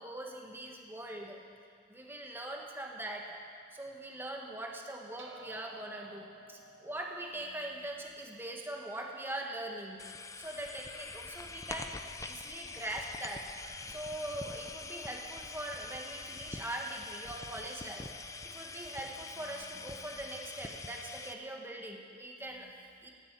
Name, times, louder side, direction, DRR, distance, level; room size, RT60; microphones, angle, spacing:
voice 1, 0.0-1.4 1.9-3.4 3.7-13.5 13.9-23.1, right 1 dB, 10° right, 0 dB, 1.6 m, -42 dB
sound 1, 5.2-9.8, right 3 dB, 75° right, 1.1 m, -56 dB
sound 2, 10.0-21.3, left 3 dB, 15° left, 0.5 m, -45 dB
16.0 x 8.3 x 8.9 m, 2.1 s
head